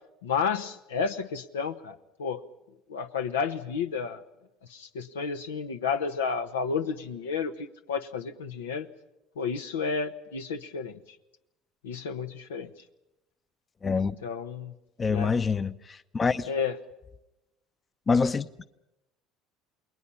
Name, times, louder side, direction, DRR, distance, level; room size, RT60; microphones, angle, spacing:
voice 1, 0.2-2.4 2.9-4.2 4.7-7.5 7.9-8.9 9.4-10.9 11.8-12.7 13.9-14.7 15.1-15.3 16.5-16.7, left 6 dB, 90° left, 1.2 m, -31 dB
voice 2, 13.8-14.1 15.0-16.5 18.1-18.7, left 5 dB, 30° left, 0.8 m, -26 dB
29.0 x 21.0 x 5.7 m
hypercardioid pair, 75°, 0 cm